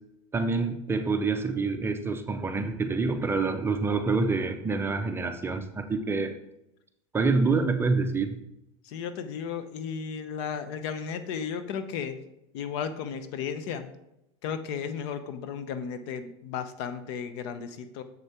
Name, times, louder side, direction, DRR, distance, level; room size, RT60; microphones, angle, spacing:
voice 1, 0.3-6.3 7.1-8.4, right 4 dB, 15° right, 7 dB, 0.6 m, -27 dB
voice 2, 8.8-12.2 12.5-13.9 14.4-18.0, left 7 dB, 60° left, 10 dB, 0.9 m, -34 dB
7.3 x 6.5 x 4.5 m, 0.86 s
supercardioid pair, 130°, 16 cm